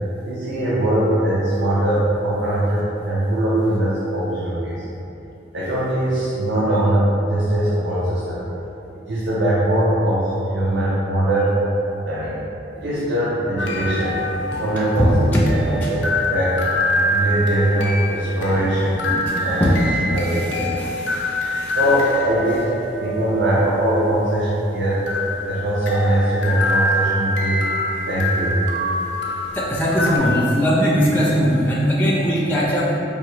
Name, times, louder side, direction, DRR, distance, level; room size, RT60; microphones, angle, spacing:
voice 1, 0.2-4.8 5.5-8.4 9.1-11.6 12.0-12.4 12.7-14.2 14.6-16.0 16.3-16.5 17.1-19.0 19.4-19.7 20.1-20.7 21.7-22.7 23.0-25.0 25.5-27.7 28.1-28.6, right 1 dB, 75° right, -8 dB, 0.6 m, -21 dB
sound 1, 13.6-30.2, left 1 dB, 75° left, 0.4 m, -25 dB
voice 2, 15.0-15.5 15.8-16.0 18.5-21.8 28.6-28.7 29.5-32.9, equal, 10° left, -6 dB, 0.4 m, -21 dB
4.7 x 2.7 x 3.1 m, 2.9 s
head